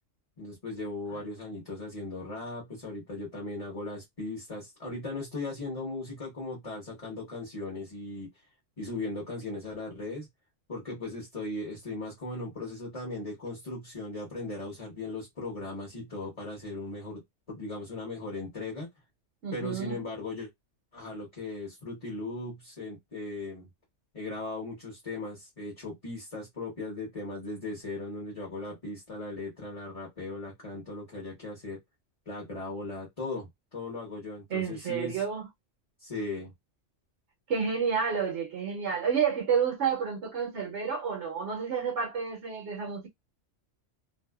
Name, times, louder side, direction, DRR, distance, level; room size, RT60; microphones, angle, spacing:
voice 1, 0.4-8.3 8.8-10.3 10.7-17.2 17.5-18.9 19.5-20.5 20.9-23.7 24.1-31.8 32.3-35.2 36.0-36.5, left 2 dB, 30° left, 1.0 m, -38 dB
voice 2, 19.4-20.0 34.5-35.5 37.5-43.1, right 6 dB, 65° right, 1.1 m, -30 dB
2.7 x 2.4 x 2.2 m
omnidirectional pair, 1.3 m